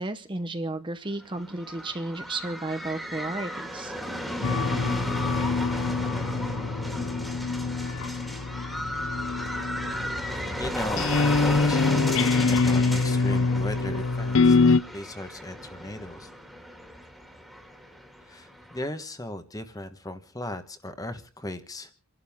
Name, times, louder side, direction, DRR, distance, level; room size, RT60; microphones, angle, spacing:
voice 1, 0.0-3.9, right 2 dB, 20° right, 9 dB, 0.8 m, -33 dB
sound 1, 1.2-18.9, equal, ahead, 2.1 m, -35 dB
sound 2, 4.4-14.8, left 4 dB, 60° left, 0.6 m, -25 dB
voice 2, 10.6-16.3 18.2-21.9, left 1 dB, 15° left, 9 dB, 1.2 m, -37 dB
29.5 x 12.0 x 3.6 m, 0.38 s
head